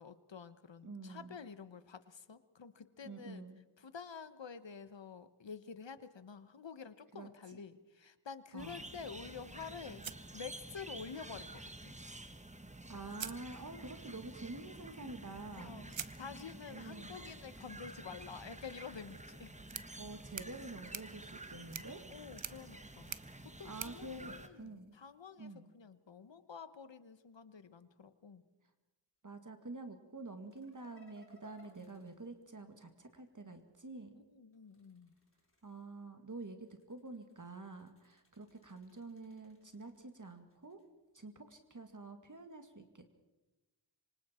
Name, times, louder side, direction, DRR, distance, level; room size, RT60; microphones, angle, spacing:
voice 1, 0.0-3.5 3.8-12.0 15.6-19.6 22.1-23.1 23.4-28.4 34.3-35.1, left 6 dB, 75° left, 12 dB, 1.2 m, -49 dB
voice 2, 0.8-1.4 3.0-3.6 7.1-7.6 8.5-8.9 12.9-15.9 16.7-17.3 20.0-22.0 23.6-25.0 25.4-25.7 29.2-34.2 35.6-40.8 41.1-43.0, right 3 dB, 45° right, 6 dB, 2.0 m, -48 dB
sound 1, 8.6-24.5, right 1 dB, 15° right, 1.3 m, -50 dB
sound 2, 10.0-11.1 12.5-12.6 13.1-14.1 15.9-25.1, right 8 dB, 90° right, 0.9 m, -50 dB
sound 3, 30.5-33.3 34.5-36.1 36.6-40.9, left 1 dB, 30° left, 3.6 m, -66 dB
27.0 x 24.5 x 4.4 m, 1.1 s
wide cardioid pair, 70°, 44 cm